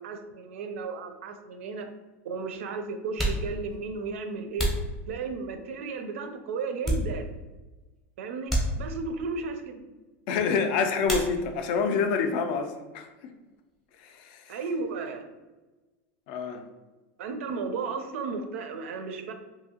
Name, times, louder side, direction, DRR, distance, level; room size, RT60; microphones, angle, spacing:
voice 1, 0.0-1.9 2.2-4.7 5.1-7.3 8.2-9.8 14.5-15.3 17.2-19.3, right 4 dB, 75° right, 7 dB, 0.4 m, -34 dB
sound 1, 1.3-1.4 2.3-2.4 3.0-5.6 6.2-7.6 7.8-8.0 8.4-9.3 11.0-11.8 12.1-12.8 13.0-15.2, right 1 dB, ahead, 0.6 m, -32 dB
voice 2, 10.3-13.1 14.0-14.6 16.3-16.6, left 5 dB, 45° left, 6 dB, 0.3 m, -27 dB
2.7 x 2.7 x 2.7 m, 1.2 s
supercardioid pair, 170°, 7 cm